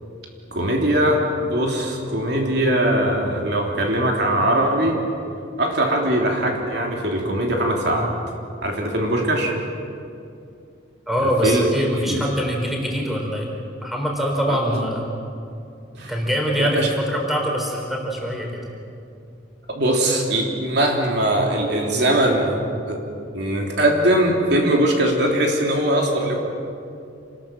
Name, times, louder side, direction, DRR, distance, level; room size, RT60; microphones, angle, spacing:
voice 1, 0.5-5.0 5.6-8.1 8.6-9.6 11.4-11.7 12.0-12.3 14.5-14.8 16.0-16.1 16.6-16.9 19.7-23.0 23.3-26.4, right 1 dB, 60° right, 0 dB, 3.3 m, -21 dB
voice 2, 11.1-13.5 13.8-15.0 16.1-18.6, equal, ahead, 0 dB, 4.1 m, -23 dB
28.0 x 20.0 x 7.6 m, 2.6 s
head